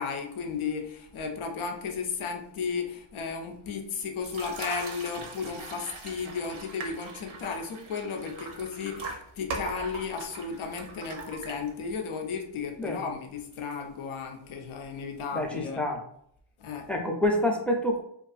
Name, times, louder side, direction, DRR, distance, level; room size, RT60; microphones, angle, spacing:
voice 1, 0.0-15.8 16.6-17.0, left 5 dB, 85° left, 4 dB, 0.5 m, -34 dB
sound 1, 4.2-12.0, right 3 dB, 75° right, 0.6 m, -40 dB
voice 2, 12.8-13.1 15.3-16.0 16.9-18.0, left 1 dB, 5° left, 1 dB, 0.4 m, -27 dB
2.5 x 2.3 x 2.4 m, 0.68 s
wide cardioid pair, 60°, 48 cm